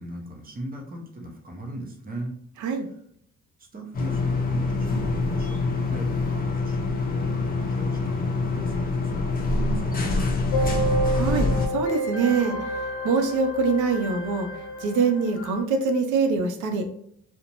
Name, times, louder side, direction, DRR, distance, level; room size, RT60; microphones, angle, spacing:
voice 1, 0.0-2.3 3.6-10.2, right 2 dB, 30° right, 0 dB, 0.8 m, -38 dB
sound 1, 3.9-11.7, left 3 dB, 30° left, 0.6 m, -25 dB
sound 2, 10.5-15.6, right 1 dB, 70° left, 0.7 m, -30 dB
voice 2, 11.1-14.5 14.8-16.9, right 4 dB, 80° right, 4 dB, 0.6 m, -24 dB
2.6 x 2.1 x 2.9 m, 0.68 s
cardioid pair, 90°, 30 cm